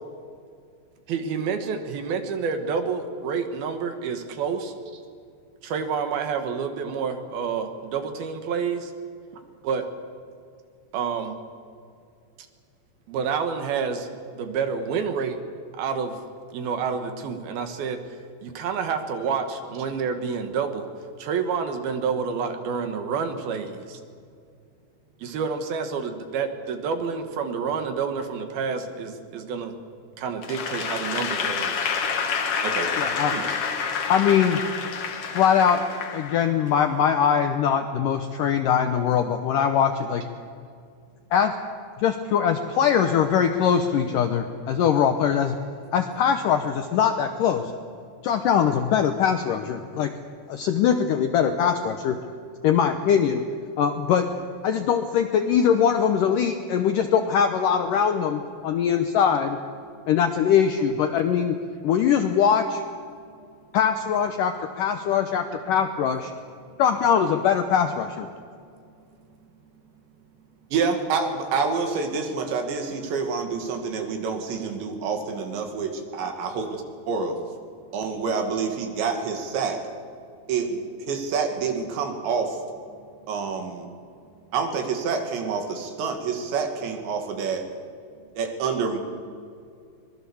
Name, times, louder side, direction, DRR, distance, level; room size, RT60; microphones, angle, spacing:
voice 1, 1.1-4.7 5.6-8.9 9.6-9.9 10.9-11.3 13.1-14.1 14.3-15.4 15.8-16.2 16.5-18.1 18.4-20.9 21.2-24.0 25.2-29.7 30.2-31.9, right 6 dB, 65° right, 7 dB, 3.2 m, -28 dB
Applause / Crowd, 30.4-36.8, left 6 dB, 60° left, 1.5 m, -28 dB
voice 2, 33.0-33.4 34.1-34.6 35.3-35.8 36.1-40.2 41.3-41.5 42.0-45.6 45.9-47.7 48.2-50.1 50.5-52.2 52.6-53.4 53.8-54.3 54.6-59.6 60.1-61.6 61.8-62.8 63.7-66.3 66.8-68.3, left 8 dB, 80° left, 7 dB, 1.9 m, -22 dB
voice 3, 70.7-77.4 77.9-79.8 80.5-82.6 83.3-83.9 84.5-87.7 88.4-89.0, right 5 dB, 85° right, 4 dB, 4.5 m, -27 dB
24.5 x 21.0 x 7.1 m, 2.3 s
omnidirectional pair, 5.0 m